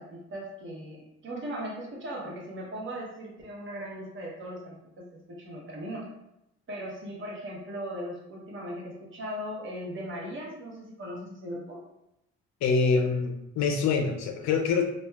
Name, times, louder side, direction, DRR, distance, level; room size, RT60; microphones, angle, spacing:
voice 1, 0.0-6.0 6.7-11.8, equal, 40° right, -3 dB, 0.9 m, -38 dB
voice 2, 12.6-14.9, left 5 dB, 65° left, 4 dB, 0.5 m, -25 dB
2.7 x 2.2 x 2.3 m, 0.87 s
cardioid pair, 90°, 30 cm